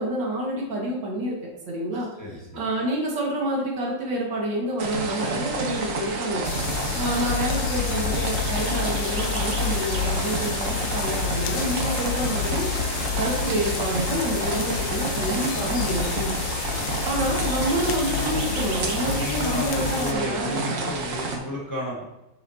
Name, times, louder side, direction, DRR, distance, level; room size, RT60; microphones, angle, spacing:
voice 1, 0.0-2.1 2.5-6.5 6.9-12.7 13.2-16.4 17.0-20.9, right 1 dB, 80° right, -3 dB, 2.4 m, -28 dB
sound 1, 4.8-21.4, right 3 dB, 50° right, 1.3 m, -30 dB
sound 2, 6.4-20.1, left 8 dB, 80° left, 1.3 m, -29 dB
sound 3, 8.4-17.2 17.5-17.7, left 1 dB, 30° left, 1.1 m, -48 dB
voice 2, 19.0-22.0, left 1 dB, 10° left, -3 dB, 1.2 m, -33 dB
7.8 x 6.4 x 2.8 m, 0.96 s
omnidirectional pair, 1.9 m